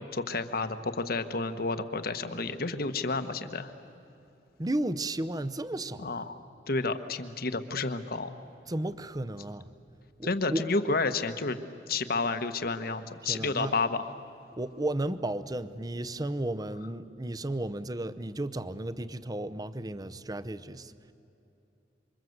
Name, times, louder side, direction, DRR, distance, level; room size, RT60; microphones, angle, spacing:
voice 1, 0.0-3.7 6.0-6.4 6.7-8.3 10.2-11.6 11.9-14.1, left 3 dB, 55° left, 10 dB, 1.3 m, -30 dB
voice 2, 4.6-6.1 8.7-9.7 10.2-10.6 13.2-13.7 14.6-21.1, right 1 dB, 20° right, 13 dB, 0.7 m, -33 dB
27.5 x 25.0 x 8.0 m, 2.9 s
head